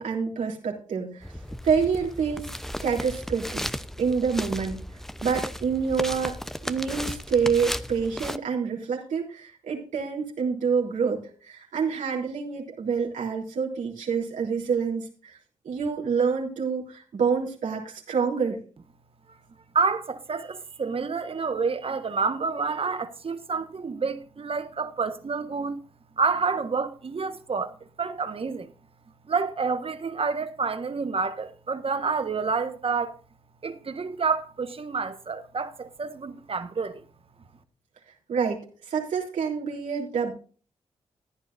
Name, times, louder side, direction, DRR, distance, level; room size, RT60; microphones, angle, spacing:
voice 1, 0.0-1.3 1.6-2.5 2.8-3.6 4.0-4.8 5.2-6.4 6.6-15.4 15.6-18.6 38.3-40.3, right 6 dB, 75° right, 3.5 m, -27 dB
sound 1, 1.2-8.4, equal, 5° left, 0.7 m, -35 dB
voice 2, 19.7-25.8 26.2-28.7 29.3-33.2 33.6-37.0, right 5 dB, 45° right, 1.4 m, -28 dB
14.5 x 11.0 x 2.6 m
supercardioid pair, 45°, 13 cm